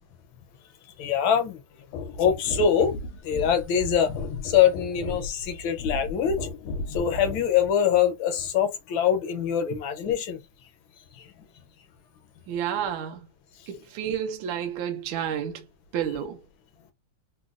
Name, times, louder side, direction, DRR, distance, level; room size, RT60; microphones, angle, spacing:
voice 1, 1.0-1.6 2.2-2.9 3.2-4.1 4.4-6.4 6.9-10.4, left 8 dB, 70° left, 1.4 m, -23 dB
sound 1, 1.9-7.5 8.4-8.5, left 3 dB, 85° left, 1.5 m, -35 dB
voice 2, 12.5-13.2 13.7-15.6 15.9-16.4, right 9 dB, 75° right, 1.3 m, -30 dB
3.9 x 2.2 x 2.4 m
omnidirectional pair, 2.4 m